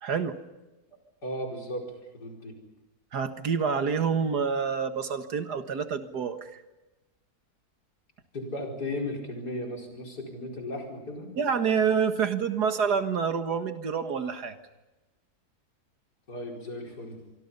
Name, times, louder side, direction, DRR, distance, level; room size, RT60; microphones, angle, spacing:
voice 1, 0.0-0.4 3.1-6.6 11.4-14.6, right 6 dB, 80° right, 7 dB, 2.2 m, -27 dB
voice 2, 1.2-1.8 2.1-2.5 8.3-11.3 16.3-17.2, left 1 dB, 90° left, 0 dB, 5.5 m, -35 dB
25.5 x 25.0 x 5.6 m, 1.1 s
omnidirectional pair, 1.7 m